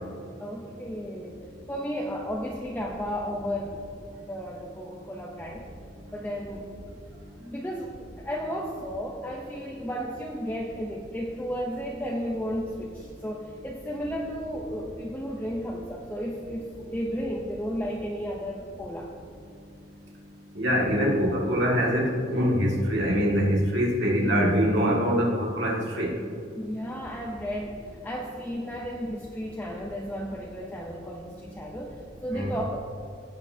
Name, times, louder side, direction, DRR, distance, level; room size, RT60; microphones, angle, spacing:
voice 1, 0.4-1.4 1.7-3.8 4.2-5.7 6.1-6.7 7.1-19.1 26.6-32.8, equal, 10° left, -2 dB, 0.6 m, -33 dB
voice 2, 20.6-26.1 32.3-32.5, equal, 60° right, -3 dB, 2.1 m, -24 dB
16.0 x 7.8 x 2.7 m, 2.6 s
head